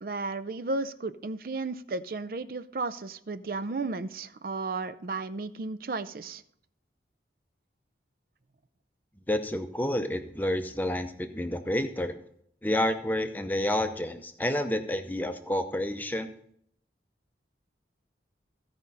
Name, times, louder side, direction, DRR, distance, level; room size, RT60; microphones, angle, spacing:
voice 1, 0.0-6.4, right 3 dB, 55° right, 13 dB, 0.5 m, -34 dB
voice 2, 9.3-12.2 12.6-16.3, left 1 dB, 10° left, 7 dB, 0.7 m, -29 dB
15.5 x 5.2 x 4.1 m, 0.68 s
head